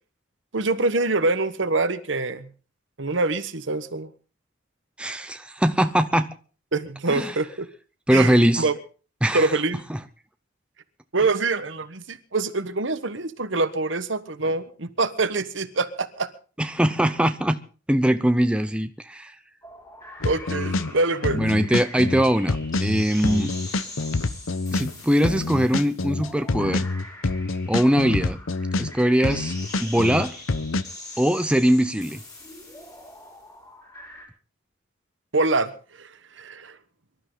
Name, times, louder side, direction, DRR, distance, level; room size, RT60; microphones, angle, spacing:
voice 1, 0.5-2.5 3.0-4.1 6.7-7.7 8.1-8.7 9.3-9.8 11.1-16.3 20.2-21.4 35.3-35.7 36.0-36.1 36.4-36.8, right 3 dB, 65° right, 1.3 m, -25 dB
voice 2, 5.0-6.3 7.1-7.3 8.1-8.7 9.2-9.5 9.9-10.0 16.6-17.6 17.9-19.3 21.3-23.5 24.7-26.9 27.7-28.4 28.8-29.5 29.8-30.3 31.2-32.2, equal, 5° right, 0.7 m, -21 dB
sound 1, 19.6-34.3, left 1 dB, 15° left, 5.2 m, -42 dB
sound 2, 20.2-20.9 21.2-24.9 25.2-28.9 29.2-30.8, left 3 dB, 85° left, 0.9 m, -26 dB
24.0 x 12.5 x 4.0 m
head